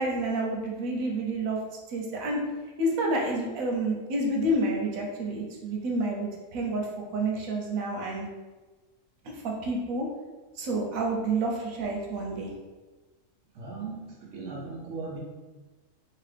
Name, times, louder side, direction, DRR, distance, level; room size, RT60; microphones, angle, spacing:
voice 1, 0.0-1.6 1.9-2.4 2.8-8.2 9.4-10.1 10.6-12.5, right 2 dB, 90° right, -1 dB, 1.1 m, -29 dB
voice 2, 13.5-15.2, right 4 dB, 65° right, -3 dB, 1.1 m, -38 dB
2.9 x 2.8 x 3.3 m, 1.2 s
omnidirectional pair, 1.4 m